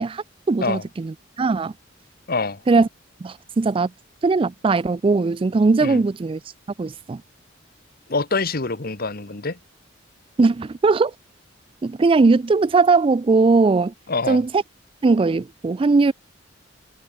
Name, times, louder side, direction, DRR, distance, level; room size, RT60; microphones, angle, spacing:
voice 1, 0.0-1.7 2.7-2.9 3.2-3.9 4.2-6.4 6.8-7.2 10.4-11.1 11.8-13.9 14.3-14.6 15.0-16.1, right 3 dB, 25° right, 0.4 m, -19 dB
voice 2, 2.3-2.6 5.8-6.0 8.1-9.6 14.1-14.4, left 3 dB, 50° left, 1.6 m, -25 dB
head